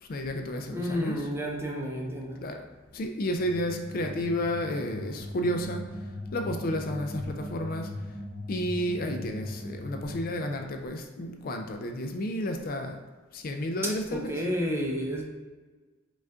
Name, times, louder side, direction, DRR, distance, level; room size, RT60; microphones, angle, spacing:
voice 1, 0.0-1.3 2.4-2.6 2.9-6.1 6.3-8.1 8.5-13.0 13.3-14.4, equal, 45° left, 4 dB, 0.4 m, -32 dB
voice 2, 0.7-2.4 14.1-15.2, equal, 10° right, -1 dB, 0.6 m, -31 dB
sound 1, 3.3-10.6, left 1 dB, 15° left, 1.5 m, -39 dB
5.1 x 2.5 x 3.5 m, 1.3 s
head